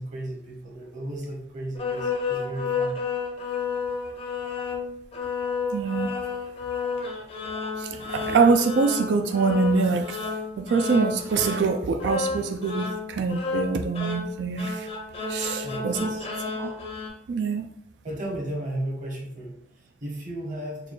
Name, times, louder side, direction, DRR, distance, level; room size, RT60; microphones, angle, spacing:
voice 1, 0.0-2.9 15.6-16.2 18.0-20.9, right 1 dB, 45° right, -1 dB, 1.0 m, -34 dB
sound 1, 1.8-17.1, left 5 dB, 35° left, 0.6 m, -31 dB
voice 2, 5.7-6.2 7.8-10.2 10.6-14.9 15.3-16.1 16.6-16.8 17.3-17.6, right 4 dB, 70° right, 6 dB, 0.3 m, -24 dB
4.0 x 2.3 x 3.1 m, 0.67 s
head